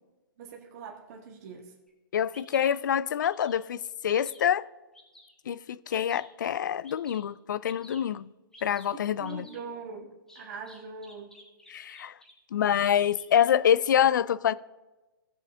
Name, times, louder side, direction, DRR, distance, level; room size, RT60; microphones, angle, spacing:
voice 1, 0.4-1.7 8.9-11.4, right 5 dB, 40° right, 1.6 m, -42 dB
Bird vocalization bird call bird song, 1.9-2.0 2.3-2.7 3.2-3.7 4.1-4.5 4.9-5.3 5.9-6.3 6.8-7.2 7.6-8.0 8.5-8.9 9.2-9.6 10.3-12.3 12.7-13.4, left 1 dB, 5° left, 1.7 m, -53 dB
voice 2, 2.1-4.7 5.5-8.3 8.6-9.4 11.7-12.1 12.5-14.5, left 9 dB, 55° left, 0.4 m, -26 dB
18.0 x 7.4 x 2.7 m
figure-of-eight pair, 125°, 12 cm